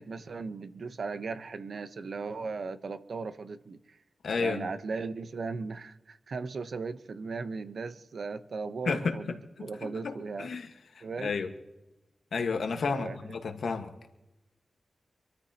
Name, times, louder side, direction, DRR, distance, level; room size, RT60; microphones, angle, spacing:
voice 1, 0.0-4.0 4.4-10.5 11.0-11.4 12.9-13.3, right 4 dB, 70° right, 10 dB, 1.0 m, -37 dB
voice 2, 4.2-4.7 8.8-9.1 9.8-10.7 10.9-11.5 12.3-13.9, left 5 dB, 80° left, 5 dB, 1.5 m, -31 dB
26.0 x 13.0 x 3.0 m, 1.0 s
cardioid pair, 65°, 0 cm